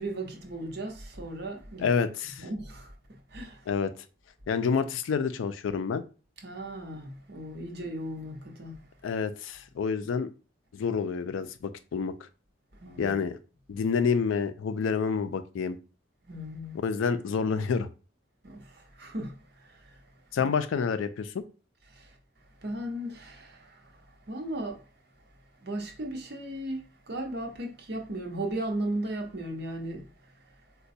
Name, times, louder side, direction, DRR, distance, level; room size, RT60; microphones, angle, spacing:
voice 1, 0.0-1.9 2.4-2.9 3.3-3.6 6.4-8.8 12.8-13.1 16.3-16.8 18.4-20.0 20.4-20.5 21.9-22.2 22.6-24.8 25.6-30.1, right 1 dB, 55° right, 0.7 m, -36 dB
voice 2, 1.8-2.5 3.7-3.9 4.5-6.0 9.0-10.3 10.7-12.3 13.0-13.4 13.7-15.8 16.8-17.9 20.3-21.4, left 5 dB, 80° left, 0.4 m, -28 dB
4.0 x 2.2 x 2.6 m
head